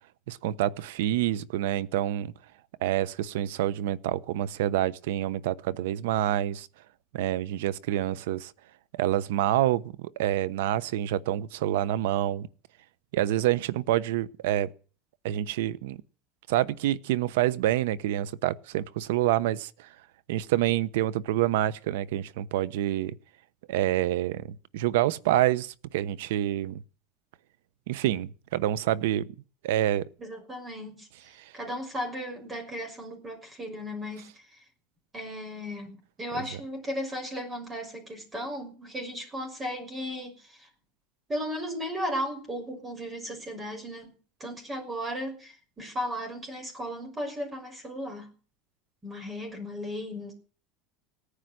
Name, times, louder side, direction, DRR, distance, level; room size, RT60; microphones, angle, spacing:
voice 1, 0.3-2.3 2.8-6.7 7.1-8.5 8.9-12.5 13.1-14.7 15.2-16.0 16.5-19.9 20.3-23.1 23.7-26.8 27.9-29.2 29.6-30.0 36.3-36.4, right 13 dB, 85° right, 0.9 m, -27 dB
voice 2, 30.2-31.1 31.5-34.6 35.1-40.7 41.3-44.1 44.4-48.3 49.0-50.3, equal, 15° right, 6.0 m, -36 dB
18.0 x 9.9 x 7.8 m
supercardioid pair, 140°, 0 cm